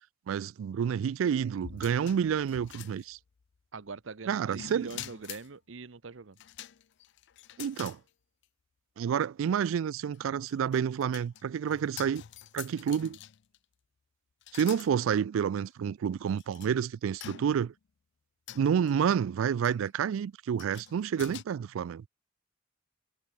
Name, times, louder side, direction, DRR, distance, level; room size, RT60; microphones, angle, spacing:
voice 1, 0.3-3.2 4.3-4.9 7.6-8.0 9.0-12.2 12.5-13.2 14.5-17.7 18.6-22.0, right 8 dB, 85° right, 0.3 m, -29 dB
sound 1, 1.6-3.4 4.5-5.5 6.4-8.0 8.4-8.5 10.1-13.6 14.4-14.9 15.7-15.8 16.4-16.7 17.2-17.8 18.5-18.9 19.6-19.9 20.6-21.4, left 10 dB, 60° left, 0.5 m, -46 dB
voice 2, 3.7-6.4 12.7-13.0, right 4 dB, 70° right, 0.8 m, -43 dB
head